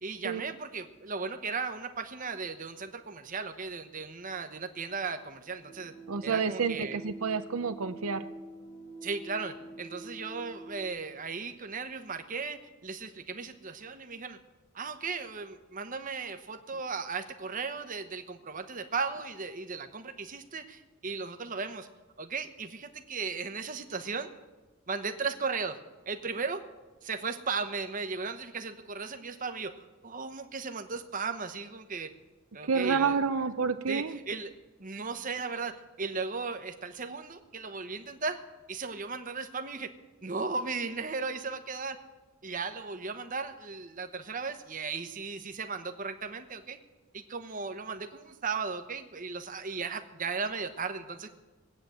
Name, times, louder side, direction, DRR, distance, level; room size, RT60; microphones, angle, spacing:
voice 1, 0.0-5.9 6.2-7.0 9.0-14.4 14.7-21.9 22.2-24.3 24.9-25.8 26.1-26.6 27.0-32.1 32.5-33.2 33.9-34.5 34.8-38.4 38.7-39.9 40.2-42.0 42.4-46.8 47.1-51.3, right 4 dB, 40° right, 8 dB, 1.0 m, -36 dB
sound 1, 5.6-10.9, right 2 dB, 85° left, 4.8 m, -46 dB
voice 2, 6.1-8.2 32.7-34.2, right 5 dB, 80° right, 9 dB, 0.7 m, -29 dB
19.0 x 8.8 x 7.8 m, 1.2 s
head